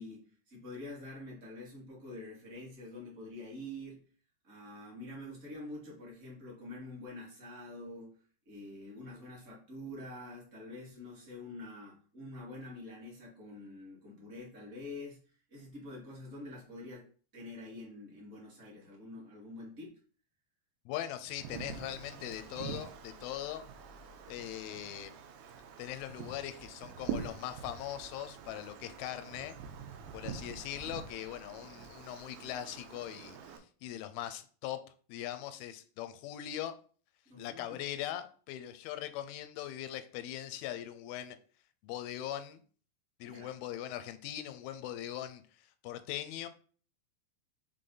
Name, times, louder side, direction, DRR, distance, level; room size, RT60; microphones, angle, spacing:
voice 1, 0.0-4.1 4.4-15.2 15.5-20.0 37.3-37.8 43.2-43.5, left 1 dB, 25° right, -3 dB, 1.8 m, -46 dB
voice 2, 20.9-23.6 24.3-25.1 25.8-29.6 30.1-33.4 33.8-34.8 35.1-36.8 37.4-41.4 41.8-42.6 43.2-45.4 45.8-46.5, left 12 dB, 85° left, 11 dB, 2.4 m, -40 dB
Wind, 21.3-33.6, right 7 dB, 85° right, 2.8 m, -45 dB
6.7 x 4.0 x 3.8 m, 0.42 s
omnidirectional pair, 4.4 m